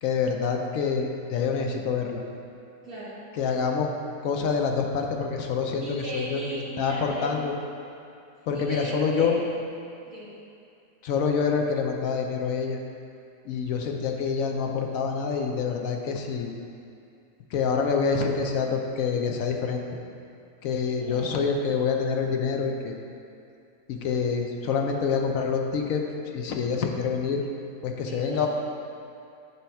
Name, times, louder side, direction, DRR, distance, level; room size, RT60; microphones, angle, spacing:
voice 1, 0.0-2.2 3.3-3.9 4.2-6.5 6.8-7.5 8.5-9.4 11.0-12.8 13.4-16.5 17.5-19.8 20.6-23.0 23.9-26.0 26.3-27.5 27.8-28.5, left 5 dB, 70° left, 3 dB, 1.0 m, -26 dB
voice 2, 2.8-3.2 5.8-7.5 8.5-9.4 10.1-10.3 21.0-21.4 28.1-28.5, right 1 dB, 70° right, -9 dB, 1.7 m, -36 dB
8.3 x 3.0 x 5.7 m, 2.5 s
omnidirectional pair, 1.5 m